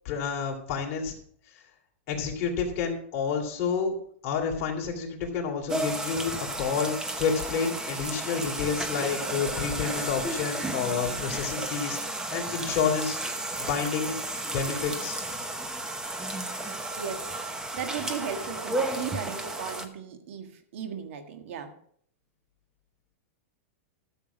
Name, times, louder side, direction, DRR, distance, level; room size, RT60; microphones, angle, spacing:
voice 1, 0.0-1.1 2.1-3.9 4.2-6.3 6.6-13.2 13.6-14.2 14.5-15.2, left 6 dB, 40° left, 0 dB, 2.9 m, -29 dB
sound 1, 5.7-19.9, right 2 dB, 10° right, 0.9 m, -33 dB
voice 2, 17.0-21.7, right 7 dB, 65° right, 7 dB, 1.7 m, -37 dB
12.5 x 7.2 x 5.1 m, 0.63 s
supercardioid pair, 155°, 7 cm